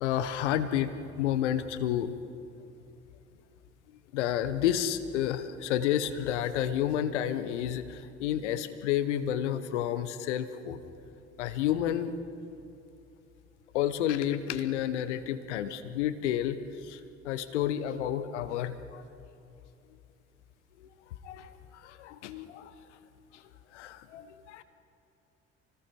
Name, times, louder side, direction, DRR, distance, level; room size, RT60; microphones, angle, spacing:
voice 1, 0.0-2.1 4.1-10.8 11.4-12.2 13.7-17.0 17.2-19.0 20.8-20.9 21.2-22.7 23.3-23.4 23.7-24.6, left 10 dB, 80° left, 13 dB, 1.1 m, -30 dB
28.5 x 19.0 x 5.4 m, 2.7 s
figure-of-eight pair, 50°, 35 cm